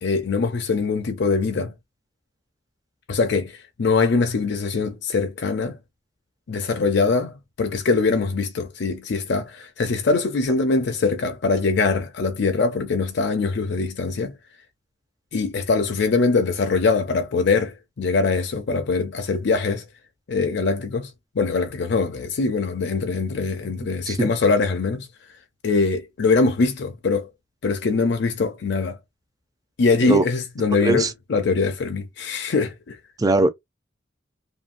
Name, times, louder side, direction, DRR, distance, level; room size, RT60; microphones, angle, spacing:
voice 1, 0.0-1.7 3.1-5.8 6.5-14.4 15.3-19.9 20.3-25.1 25.6-27.3 27.6-29.0 29.8-33.0, left 4 dB, 65° left, 0.5 m, -22 dB
voice 2, 33.2-33.5, right 2 dB, 20° right, 0.4 m, -20 dB
2.7 x 2.6 x 2.5 m
head